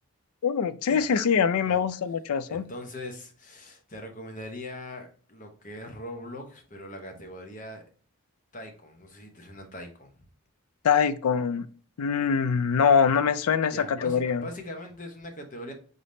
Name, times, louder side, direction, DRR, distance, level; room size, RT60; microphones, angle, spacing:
voice 1, 0.4-2.7 10.8-11.7 12.0-14.4, left 6 dB, 80° left, 13 dB, 0.4 m, -23 dB
voice 2, 2.5-7.8 8.5-10.1 13.7-15.7, left 1 dB, 35° left, 4 dB, 0.8 m, -41 dB
3.9 x 3.4 x 2.6 m, 0.43 s
head